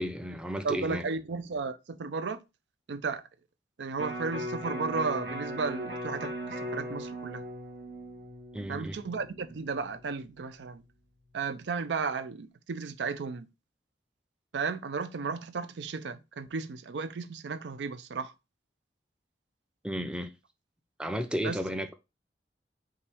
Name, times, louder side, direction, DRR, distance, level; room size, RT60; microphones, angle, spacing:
voice 1, 0.0-1.0 8.5-9.0 19.8-20.3 21.0-21.9, equal, 5° right, 0.4 m, -33 dB
voice 2, 0.6-2.4 2.9-3.2 3.8-7.4 8.7-10.8 11.3-13.5 14.5-18.3 21.4-21.6, right 4 dB, 85° right, 0.5 m, -34 dB
Electric guitar, 4.0-10.2 10.6-10.7, equal, 65° right, 1.8 m, -38 dB
5.5 x 2.7 x 3.4 m
head